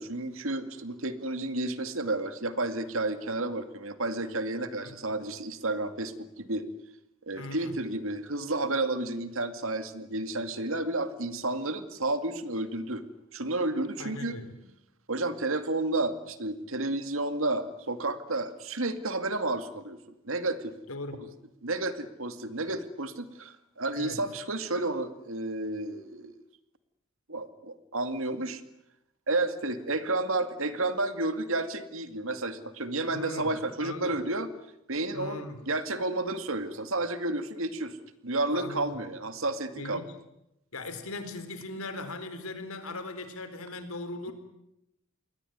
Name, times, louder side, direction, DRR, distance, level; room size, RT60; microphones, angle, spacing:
voice 1, 0.0-6.7 7.3-13.0 13.3-14.4 15.1-20.0 20.3-20.7 21.6-26.3 27.3-28.6 29.3-34.5 34.9-38.0 38.2-40.0, right 2 dB, 70° right, 10 dB, 2.3 m, -31 dB
voice 2, 7.3-7.8 14.0-14.5 20.9-21.3 24.0-24.2 33.1-33.6 33.8-34.2 35.1-35.6 38.5-39.0 39.8-40.1 40.7-44.3, left 2 dB, 85° left, 10 dB, 4.1 m, -39 dB
28.0 x 22.0 x 9.5 m, 0.87 s
head